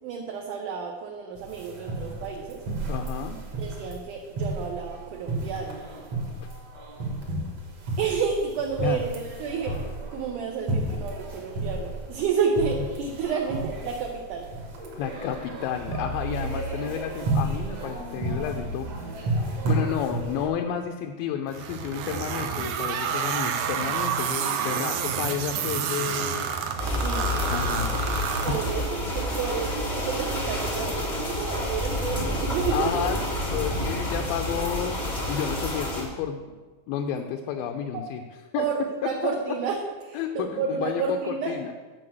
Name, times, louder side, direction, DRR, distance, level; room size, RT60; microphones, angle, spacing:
voice 1, 0.0-2.6 3.6-5.8 8.0-14.5 27.0-33.1 38.6-39.8 40.0-41.6, right 6 dB, 75° right, 1 dB, 2.0 m, -30 dB
sound 1, 1.4-20.5, right 2 dB, 55° right, 2.1 m, -32 dB
voice 2, 2.9-3.4 8.8-9.1 14.9-18.9 19.7-26.5 27.5-28.0 28.5-28.7 32.7-33.2 33.5-35.0 35.3-36.4 36.9-38.2 38.5-38.7 39.0-39.3 40.1-41.7, left 8 dB, 80° left, 3 dB, 2.2 m, -31 dB
sound 2, 21.5-29.1, right 7 dB, 90° right, 1.7 m, -29 dB
sound 3, 26.8-36.0, left 1 dB, 60° left, 0.4 m, -29 dB
7.7 x 5.6 x 7.7 m, 1.3 s
omnidirectional pair, 4.4 m